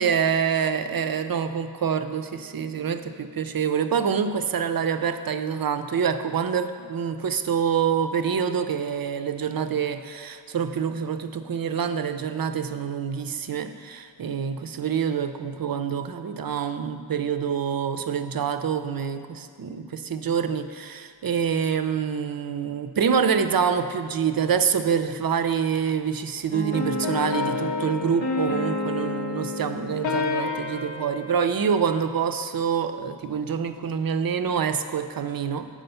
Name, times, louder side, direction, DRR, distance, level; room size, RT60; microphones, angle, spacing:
voice 1, 0.0-35.8, right 7 dB, 55° right, 10 dB, 0.5 m, -26 dB
sound 1, 26.5-32.2, left 3 dB, 90° left, 1.1 m, -29 dB
7.8 x 5.0 x 5.5 m, 2.2 s
cardioid pair, 45°, 44 cm